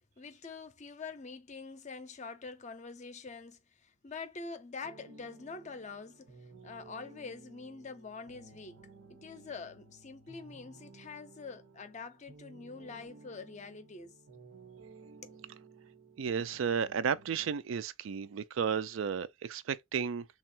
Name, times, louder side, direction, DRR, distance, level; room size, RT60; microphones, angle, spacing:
voice 1, 0.2-8.8 9.1-14.2 15.2-15.4, left 4 dB, 35° left, 0.5 m, -45 dB
sound 1, 4.8-17.5, right 3 dB, 90° right, 1.2 m, -56 dB
voice 2, 16.2-20.3, right 7 dB, 70° right, 0.4 m, -33 dB
3.4 x 2.3 x 4.3 m
head